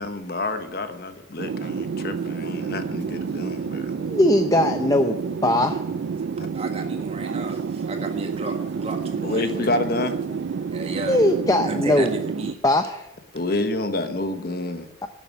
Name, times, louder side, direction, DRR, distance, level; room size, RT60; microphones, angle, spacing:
voice 1, 0.0-3.9 6.4-6.5 9.2-10.2 13.3-14.9, left 2 dB, 50° left, 8 dB, 1.1 m, -28 dB
sound 1, 1.4-12.5, right 6 dB, 65° right, 0.3 m, -29 dB
voice 2, 4.0-5.1 5.4-5.8 11.0-12.1 12.6-13.1 15.0-15.1, left 1 dB, 20° left, 6 dB, 0.5 m, -20 dB
voice 3, 6.5-9.5 10.7-11.2 11.6-12.6, right 2 dB, 30° right, 4 dB, 1.7 m, -33 dB
11.5 x 7.4 x 8.5 m, 0.87 s
head